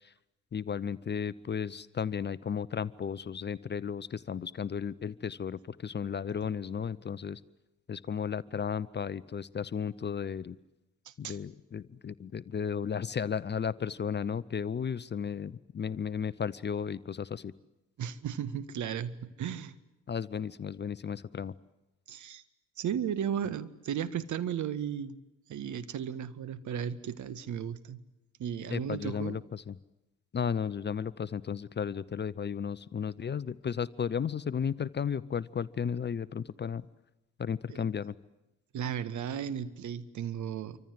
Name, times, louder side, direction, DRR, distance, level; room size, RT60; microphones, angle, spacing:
voice 1, 0.5-7.4 7.9-10.5 11.2-17.5 20.1-21.5 28.7-29.8 30.3-36.9 37.4-38.1, left 7 dB, 25° left, 17 dB, 0.9 m, -34 dB
voice 2, 11.1-11.4 18.0-19.7 22.1-22.4 22.8-25.2 25.5-28.0 28.4-29.4 37.7-37.8 38.7-40.8, right 8 dB, 50° right, 14 dB, 1.8 m, -35 dB
27.5 x 25.0 x 7.8 m, 0.97 s
hypercardioid pair, 55°, 38 cm